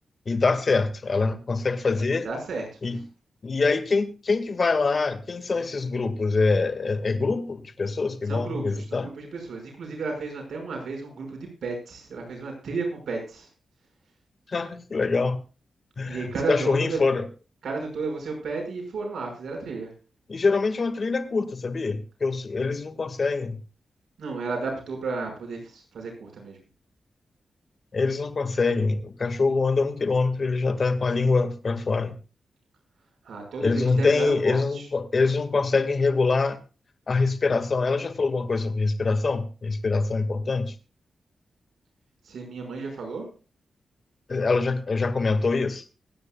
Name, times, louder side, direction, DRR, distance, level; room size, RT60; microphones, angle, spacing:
voice 1, 0.3-2.3 2.8-3.0 3.4-9.1 14.5-15.4 16.0-17.2 20.3-23.6 27.9-32.1 33.6-36.6 37.1-40.7 44.3-45.8, left 4 dB, 50° left, 1.8 m, -24 dB
voice 2, 2.2-2.7 8.3-13.5 16.1-17.1 17.6-19.9 24.2-26.6 33.2-34.9 42.2-43.2, right 4 dB, 80° right, 5.6 m, -33 dB
24.5 x 9.8 x 2.3 m
cardioid pair, 70°, 0 cm